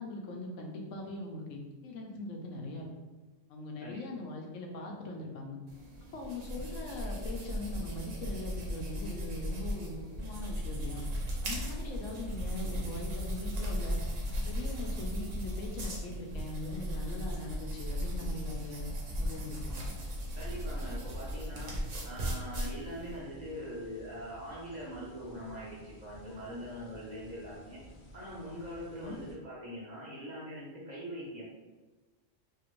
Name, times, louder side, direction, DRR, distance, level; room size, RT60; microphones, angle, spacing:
voice 1, 0.0-2.9 3.5-5.6 6.1-11.1 11.4-14.0 14.4-18.9 19.2-19.8 28.9-29.2, left 2 dB, 80° left, 1 dB, 0.9 m, -41 dB
sound 1, 5.7-23.2, equal, 80° right, 1.1 m, -37 dB
sound 2, 19.4-29.4, left 1 dB, 60° left, 0.5 m, -54 dB
voice 2, 20.3-21.7 22.0-27.8 28.1-31.4, equal, 40° right, -7 dB, 0.7 m, -42 dB
2.8 x 2.5 x 3.0 m, 1.2 s
omnidirectional pair, 1.3 m